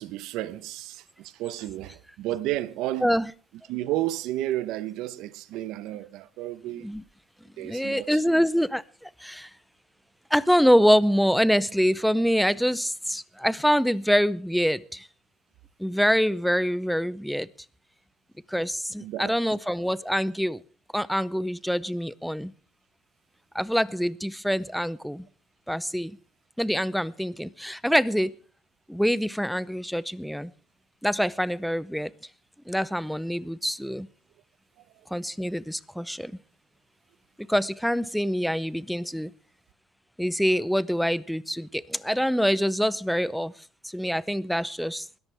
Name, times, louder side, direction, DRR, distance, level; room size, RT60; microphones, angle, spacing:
voice 1, 0.0-3.1 3.7-6.9 7.6-8.4 19.0-19.4, right 15 dB, 75° right, 0.9 m, -32 dB
voice 2, 7.6-9.5 10.3-15.1 15.8-17.5 18.5-20.6 20.9-22.5 23.5-25.3 25.7-26.2 26.6-28.3 28.9-30.5 31.0-32.1 32.7-34.1 35.1-36.3 37.4-39.3 40.2-43.5 43.8-45.1, equal, ahead, 0.6 m, -25 dB
21.0 x 13.5 x 3.5 m
cardioid pair, 135°, 0 cm